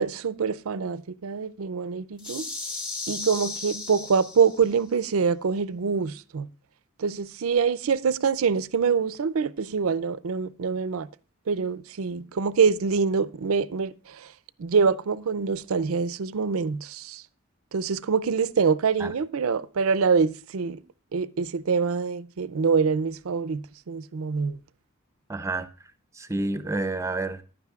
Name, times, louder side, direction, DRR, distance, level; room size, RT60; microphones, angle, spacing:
voice 1, 0.0-2.5 3.1-6.5 7.0-11.1 11.5-14.3 14.6-17.2 17.7-20.8 21.1-24.6, right 5 dB, 80° right, 0.5 m, -25 dB
sound 1, 2.2-4.7, left 3 dB, 25° left, 2.3 m, -35 dB
voice 2, 25.3-25.7 26.1-27.4, right 2 dB, 15° right, 0.6 m, -29 dB
15.0 x 11.0 x 2.4 m
head